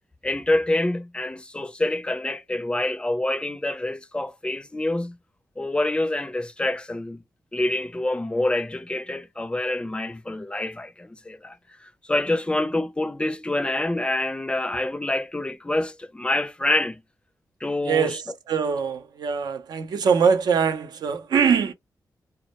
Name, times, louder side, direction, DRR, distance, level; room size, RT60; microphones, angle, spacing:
voice 1, 0.2-5.2 5.6-7.2 7.5-17.0 17.6-18.2, left 1 dB, 15° left, 0.4 m, -26 dB
voice 2, 17.8-18.2 18.5-21.7, right 6 dB, 80° right, 0.5 m, -22 dB
2.2 x 2.0 x 2.8 m
cardioid pair, 75°, 7 cm